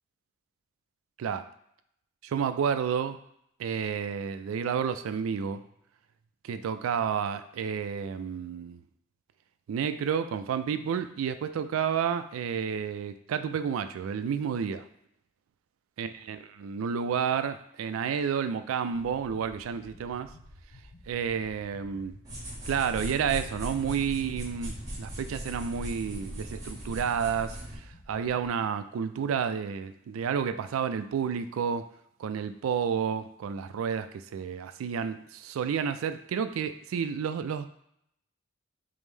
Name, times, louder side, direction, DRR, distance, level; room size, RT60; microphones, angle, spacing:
voice 1, 1.2-1.5 2.2-3.2 3.6-5.6 6.4-8.8 9.7-14.8 16.0-20.3 21.1-22.2 22.7-31.8 32.2-37.7, right 7 dB, 90° right, 10 dB, 0.3 m, -30 dB
sound 1, 19.1-28.5, left 1 dB, 80° left, 0.8 m, -52 dB
sound 2, 22.2-27.8, right 1 dB, 20° right, 1.1 m, -39 dB
5.3 x 2.0 x 3.2 m, 0.73 s
head